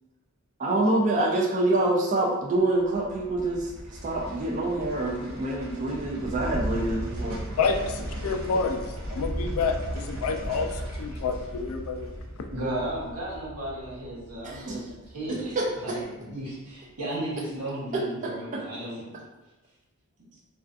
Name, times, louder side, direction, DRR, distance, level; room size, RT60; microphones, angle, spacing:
voice 1, 0.6-3.7 4.0-7.4 14.4-14.8 15.3-16.0 17.9-18.6, right 2 dB, 35° right, -2 dB, 0.3 m, -26 dB
sound 1, 2.8-16.0 16.3-16.4, equal, 65° right, 0.6 m, -37 dB
voice 2, 7.6-8.8 9.1-10.7 11.0-12.1, left 4 dB, 70° left, 5 dB, 0.3 m, -28 dB
voice 3, 12.5-15.6 15.8-19.1, right 1 dB, 85° right, -7 dB, 1.0 m, -34 dB
2.5 x 2.3 x 2.4 m, 1.1 s
head